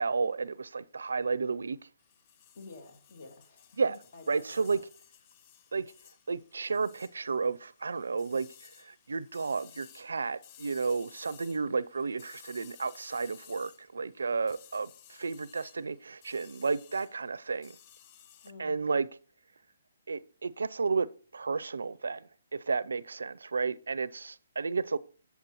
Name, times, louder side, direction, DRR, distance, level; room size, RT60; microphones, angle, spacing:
voice 1, 0.0-1.8 3.8-4.0 4.3-4.8 5.7-5.9 6.3-17.8 18.6-19.1 20.1-21.1 21.3-25.0, right 4 dB, 80° right, 0.4 m, -32 dB
sound 1, 2.0-18.5, left 10 dB, 35° left, 0.6 m, -57 dB
voice 2, 2.5-3.8 4.1-4.7 18.4-18.9, left 3 dB, 55° left, 2.1 m, -51 dB
8.2 x 8.1 x 3.0 m
hypercardioid pair, 140°, 0 cm